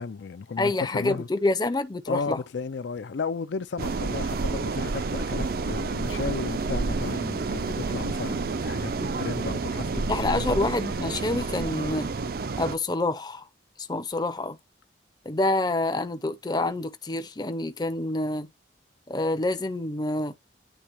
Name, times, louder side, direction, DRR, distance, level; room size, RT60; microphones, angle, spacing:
voice 1, 0.0-1.3 2.1-8.9 9.2-10.5, left 5 dB, 70° left, 0.4 m, -34 dB
voice 2, 0.6-2.4 9.0-9.1 10.1-12.1 12.6-13.5 13.8-14.6 15.3-18.5 19.1-20.3, left 2 dB, 20° left, 0.5 m, -27 dB
sound 1, 3.8-12.8, right 4 dB, 55° right, 0.5 m, -29 dB
10.0 x 3.4 x 3.0 m
head